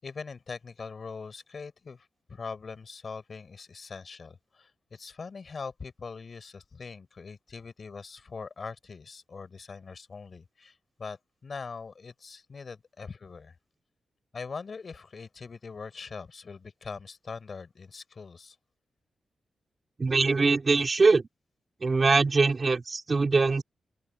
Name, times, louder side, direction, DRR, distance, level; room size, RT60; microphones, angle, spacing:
voice 1, 0.0-13.5 14.3-18.6, left 5 dB, 45° left, 6.2 m, -42 dB
voice 2, 20.0-21.3 21.8-23.6, right 3 dB, 35° right, 4.3 m, -22 dB
open air
wide cardioid pair, 130°, 0 cm